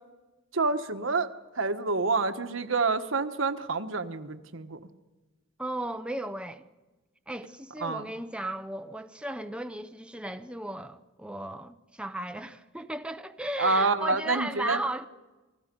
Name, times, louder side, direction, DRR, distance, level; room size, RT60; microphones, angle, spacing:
voice 1, 0.5-1.3 1.5-4.8 7.8-8.0 13.6-14.8, right 3 dB, 75° right, 1.3 m, -27 dB
voice 2, 5.6-6.6 7.3-15.1, right 1 dB, 5° right, 0.7 m, -35 dB
29.0 x 20.5 x 5.3 m
head